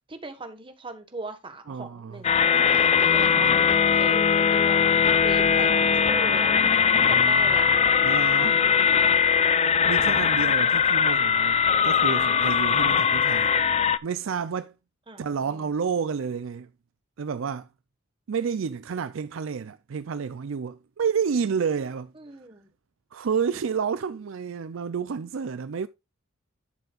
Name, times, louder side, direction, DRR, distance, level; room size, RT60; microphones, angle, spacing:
voice 1, 0.1-6.5 7.0-7.6 15.1-15.7 22.1-22.7, right 2 dB, 25° right, 1.5 m, -39 dB
voice 2, 1.7-2.2 3.3-3.6 7.0-7.5 8.0-8.6 9.9-13.5 14.0-14.7 15.2-16.7 17.2-17.7 18.3-22.1 23.1-25.9, right 6 dB, 70° right, 0.4 m, -30 dB
sound 1, 2.2-14.0, left 7 dB, 30° left, 0.5 m, -20 dB
11.5 x 6.8 x 2.4 m
head